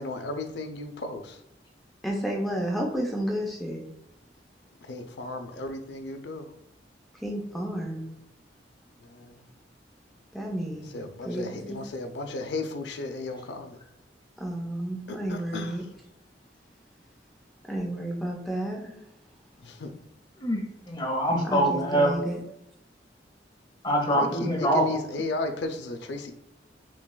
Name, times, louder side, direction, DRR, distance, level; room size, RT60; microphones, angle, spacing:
voice 1, 0.0-1.4 4.9-6.5 9.0-9.3 10.9-13.8 15.1-15.8 19.6-19.9 24.1-26.3, left 2 dB, 65° left, 6 dB, 0.5 m, -35 dB
voice 2, 2.0-3.8 7.2-8.1 10.3-11.0 11.2-11.8 14.4-15.8 17.6-19.0 21.4-22.4, right 1 dB, ahead, -1 dB, 0.5 m, -31 dB
voice 3, 20.4-22.1 23.8-25.0, right 1 dB, 25° left, 1 dB, 0.8 m, -24 dB
5.9 x 2.3 x 2.2 m, 0.84 s
head